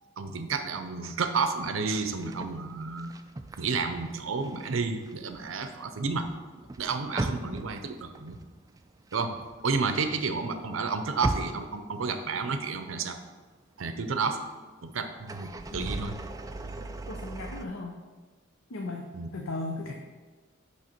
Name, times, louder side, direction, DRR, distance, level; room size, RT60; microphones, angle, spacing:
voice 1, 0.2-3.1 3.6-6.3 6.8-8.4 9.1-9.4 9.6-13.2 13.8-14.4 14.8-16.2 16.8-16.9 19.1-19.3, right 4 dB, 75° right, 8 dB, 0.6 m, -31 dB
sound 1, 2.0-4.7 5.0-10.2 10.5-12.5 12.9-13.0 15.2-17.7, right 2 dB, 15° right, 0.3 m, -38 dB
voice 2, 17.1-17.9 18.7-19.9, left 2 dB, 75° left, 2 dB, 0.7 m, -36 dB
6.3 x 5.6 x 4.4 m, 1.4 s
head